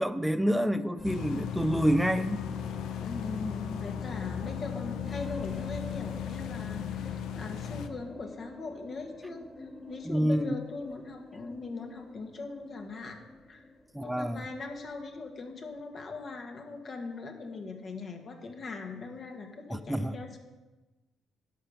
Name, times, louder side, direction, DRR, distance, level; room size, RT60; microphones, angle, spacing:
voice 1, 0.0-2.4 10.0-10.5 13.9-14.4 19.7-20.2, equal, 5° right, 0.6 m, -27 dB
sound 1, 1.0-7.9, left 8 dB, 70° left, 0.7 m, -36 dB
sound 2, 1.0-19.5, left 1 dB, 10° left, 1.4 m, -49 dB
voice 2, 3.0-13.2 13.5-13.7 14.0-20.4, left 3 dB, 50° left, 1.7 m, -40 dB
11.0 x 5.5 x 6.6 m
hypercardioid pair, 55°, 0 cm